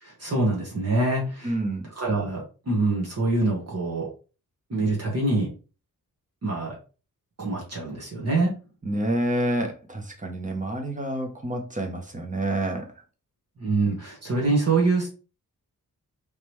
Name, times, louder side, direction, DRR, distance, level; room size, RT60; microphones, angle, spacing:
voice 1, 0.0-1.5 1.9-4.1 4.7-5.5 6.4-6.7 7.4-8.6 13.6-15.1, right 2 dB, 45° right, -3 dB, 1.4 m, -25 dB
voice 2, 1.4-1.9 8.8-12.9, right 1 dB, 20° right, 3 dB, 0.8 m, -28 dB
3.7 x 3.3 x 3.1 m, 0.34 s
wide cardioid pair, 170°, 36 cm